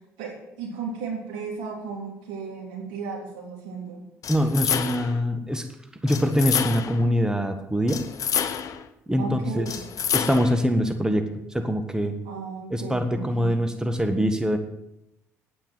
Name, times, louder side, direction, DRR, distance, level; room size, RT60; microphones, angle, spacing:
voice 1, 0.2-4.0 9.2-9.8 12.3-13.5, right 5 dB, 75° right, 0 dB, 3.6 m, -35 dB
sound 1, 4.2-5.2 6.1-7.0 7.9-8.9 9.6-10.6, left 8 dB, 50° left, 1.0 m, -28 dB
voice 2, 4.3-5.7 6.0-8.0 9.1-9.6 10.1-12.2 12.7-14.6, equal, 10° right, 7 dB, 1.6 m, -24 dB
10.0 x 8.9 x 9.2 m, 0.84 s
hypercardioid pair, 55°, 7 cm